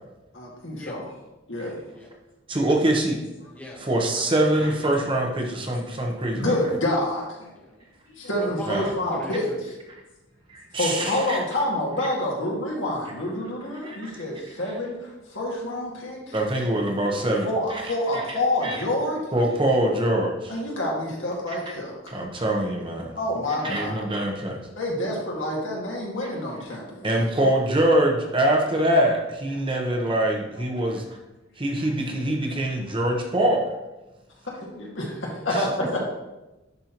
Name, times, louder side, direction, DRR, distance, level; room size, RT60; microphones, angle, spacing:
voice 1, 0.3-1.0 1.5-1.8 5.8-5.9 6.3-7.5 8.1-9.5 10.8-16.4 16.6-16.7 17.4-19.2 20.5-22.0 23.1-24.1 24.7-27.1 31.8-31.9 34.6-36.0, left 1 dB, 85° left, -3 dB, 2.0 m, -28 dB
voice 2, 2.5-3.2 3.8-6.5 8.7-8.9 10.5-11.4 13.8-14.1 16.3-17.8 18.1-18.2 18.6-18.8 19.3-20.6 21.5-21.6 22.1-23.1 23.6-24.6 26.2-26.3 27.0-31.0 31.6-33.7 35.5-35.6, right 1 dB, 25° right, 0 dB, 0.9 m, -24 dB
voice 3, 3.5-4.5 7.5-7.7 8.3-9.7 35.6-36.0, left 1 dB, 10° left, -3 dB, 1.4 m, -39 dB
11.0 x 4.3 x 3.0 m, 1.0 s
head